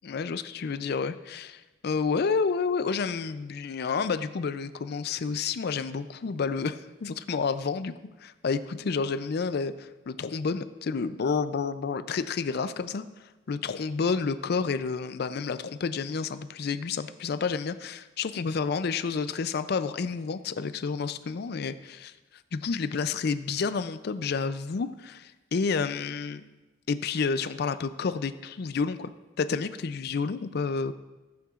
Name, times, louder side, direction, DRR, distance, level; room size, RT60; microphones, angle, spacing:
voice 1, 0.0-7.9 8.2-13.1 13.5-22.1 22.5-26.4 26.9-29.1 29.4-30.9, left 5 dB, 60° left, 13 dB, 0.4 m, -30 dB
15.0 x 8.5 x 2.4 m, 1.2 s
head